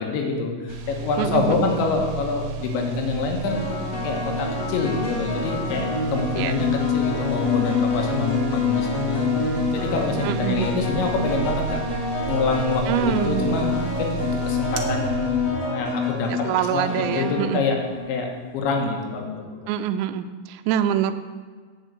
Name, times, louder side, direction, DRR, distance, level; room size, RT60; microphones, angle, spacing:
voice 1, 0.0-3.7 4.0-6.7 6.9-11.9 12.3-16.3 16.6-16.8 17.1-17.8 18.1-19.5, left 4 dB, 85° left, 2 dB, 3.6 m, -26 dB
sound 1, 0.7-15.5, right 4 dB, 70° right, 2.4 m, -32 dB
voice 2, 1.2-1.7 6.4-6.5 10.2-10.8 12.9-14.0 16.3-17.6 19.7-21.1, right 9 dB, 90° right, 8 dB, 2.9 m, -25 dB
sound 2, 2.1-2.2 3.5-18.3, left 4 dB, 50° left, 2.0 m, -27 dB
9.0 x 6.3 x 8.1 m, 1.5 s
omnidirectional pair, 5.1 m